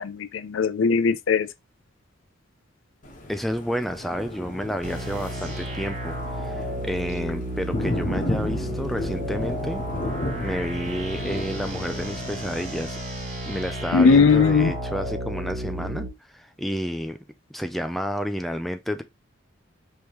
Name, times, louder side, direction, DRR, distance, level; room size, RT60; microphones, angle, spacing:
voice 1, 0.0-1.5 13.9-14.7, left 5 dB, 80° left, 0.5 m, -19 dB
Thunder, 3.0-12.7, left 1 dB, 40° left, 1.2 m, -34 dB
voice 2, 3.3-9.8 10.4-13.0 13.4-16.0 16.3-17.2 17.5-19.0, equal, ahead, 0.4 m, -30 dB
sound 1, 4.8-16.1, right 1 dB, 40° right, 3.0 m, -32 dB
5.2 x 3.1 x 3.0 m
head